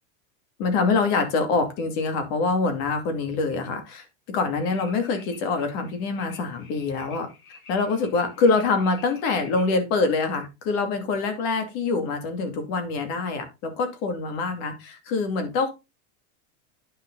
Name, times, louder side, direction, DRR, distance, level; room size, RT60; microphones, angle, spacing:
voice 1, 0.6-7.3 7.7-15.7, left 4 dB, 40° left, 6 dB, 2.4 m, -25 dB
sound 1, 4.6-9.7, left 5 dB, 65° left, 6.1 m, -51 dB
9.5 x 6.2 x 3.9 m, 0.26 s
supercardioid pair, 165°, 39 cm